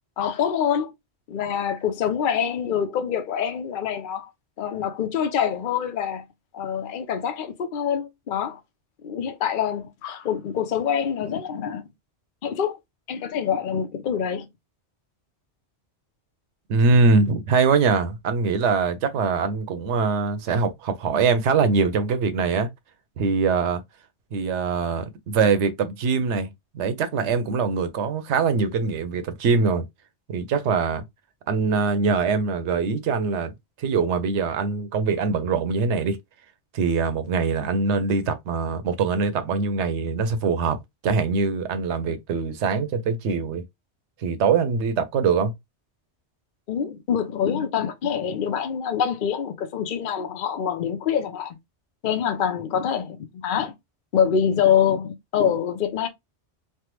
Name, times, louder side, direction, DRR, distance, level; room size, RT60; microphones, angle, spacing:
voice 1, 0.2-0.9 1.3-4.3 4.6-6.2 6.5-8.6 9.0-11.9 12.4-12.8 13.1-14.5 46.7-51.6 52.0-53.7 54.1-56.1, left 8 dB, 55° left, 0.7 m, -25 dB
voice 2, 16.7-22.7 23.2-23.8 24.3-26.5 26.7-29.8 30.3-31.0 31.5-33.5 33.8-36.2 36.7-40.8 41.0-43.6 44.2-45.5, right 5 dB, 80° right, 0.9 m, -23 dB
3.3 x 2.1 x 2.9 m
omnidirectional pair, 1.2 m